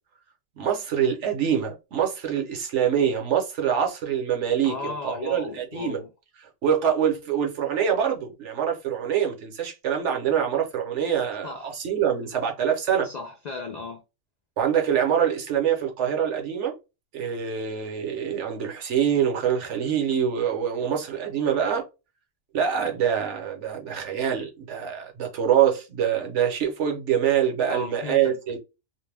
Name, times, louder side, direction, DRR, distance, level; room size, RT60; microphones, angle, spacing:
voice 1, 0.6-6.0 6.6-13.1 14.6-16.7 17.1-21.8 22.5-28.6, right 8 dB, 70° right, 1.1 m, -25 dB
voice 2, 4.6-6.1 11.4-11.8 13.0-14.0 27.7-28.4, left 3 dB, 75° left, 0.4 m, -35 dB
2.5 x 2.1 x 3.3 m
omnidirectional pair, 1.3 m